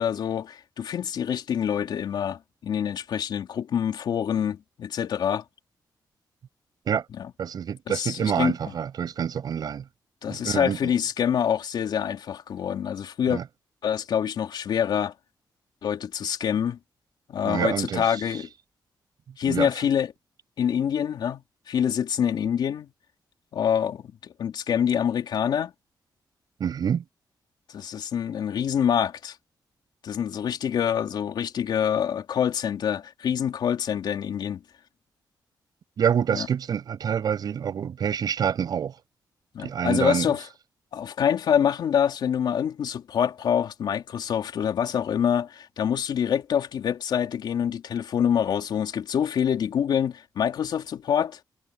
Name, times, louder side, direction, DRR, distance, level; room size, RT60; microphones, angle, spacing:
voice 1, 0.0-5.4 7.2-7.3 7.9-8.5 10.2-13.4 13.8-15.1 15.8-16.8 17.3-18.5 19.4-20.1 20.6-21.4 21.7-22.9 23.5-25.7 27.7-29.4 30.0-34.6 36.3-36.5 39.5-40.4 40.9-51.4, left 8 dB, 70° left, 3.7 m, -26 dB
voice 2, 7.4-9.8 10.3-10.9 13.3-13.4 17.4-18.1 19.4-19.7 26.6-27.0 36.0-38.9 39.6-40.3, right 8 dB, 60° right, 7.6 m, -27 dB
wide cardioid pair, 180°, 8 cm